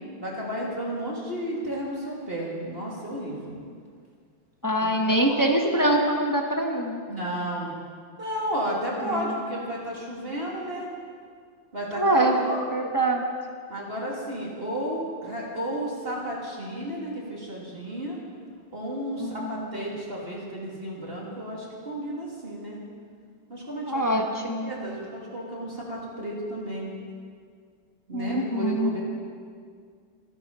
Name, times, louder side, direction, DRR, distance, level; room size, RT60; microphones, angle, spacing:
voice 1, 0.2-3.6 4.8-5.5 5.8-5.9 7.1-7.7 8.2-10.9 11.7-12.6 13.7-18.2 18.7-22.8 23.5-24.1 24.6-26.9 28.1-29.0, equal, 25° right, -4 dB, 3.0 m, -32 dB
voice 2, 4.6-7.0 9.0-9.3 11.9-12.4 12.7-13.3 19.2-19.6 23.9-24.7 28.1-28.9, right 1 dB, 15° left, 2 dB, 0.7 m, -24 dB
26.0 x 11.5 x 4.3 m, 2.1 s
omnidirectional pair, 2.3 m